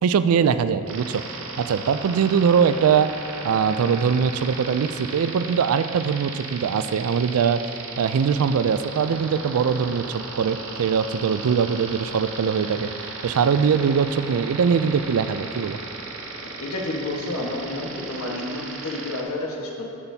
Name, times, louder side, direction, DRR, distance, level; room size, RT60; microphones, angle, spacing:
voice 1, 0.0-1.2 1.6-3.1 3.4-7.6 8.0-12.9 13.2-15.8, right 6 dB, 80° right, 13 dB, 0.3 m, -22 dB
sound 1, 0.9-19.2, right 4 dB, 65° right, 0.8 m, -36 dB
voice 2, 16.6-19.9, left 2 dB, 85° left, -1 dB, 1.3 m, -30 dB
9.6 x 8.8 x 2.7 m, 2.5 s
head